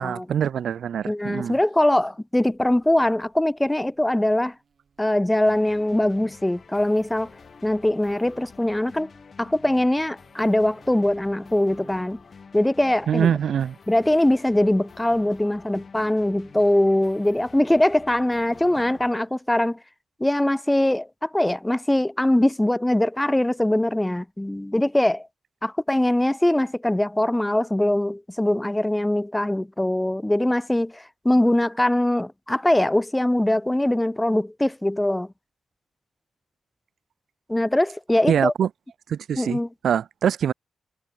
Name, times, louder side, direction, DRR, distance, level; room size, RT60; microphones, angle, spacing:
voice 1, 0.0-1.6 13.1-13.8 38.3-38.7 39.1-40.5, right 8 dB, 60° right, 0.5 m, -24 dB
voice 2, 1.0-4.5 5.0-7.3 7.6-9.1 9.4-12.2 12.5-13.3 13.9-19.8 20.2-25.3 25.6-35.3 37.5-38.5 39.4-39.7, left 1 dB, 5° left, 0.4 m, -22 dB
Buzz, 2.5-13.9, right 6 dB, 40° right, 4.7 m, -56 dB
sound 1, 5.5-19.2, left 5 dB, 35° left, 2.3 m, -49 dB
wide cardioid pair, 180°, 0 cm